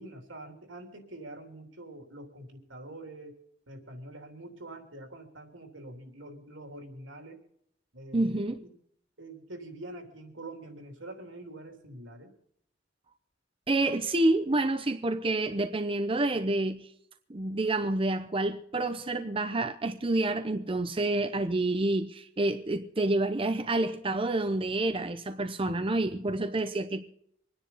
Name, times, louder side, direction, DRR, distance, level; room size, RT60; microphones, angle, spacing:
voice 1, 0.0-3.4 3.7-7.4 7.9-8.7 9.2-12.3, right 1 dB, 85° right, 3.4 m, -45 dB
voice 2, 8.1-8.6 13.7-16.9 17.3-27.0, right 2 dB, 30° right, 0.7 m, -28 dB
25.5 x 10.0 x 4.1 m
head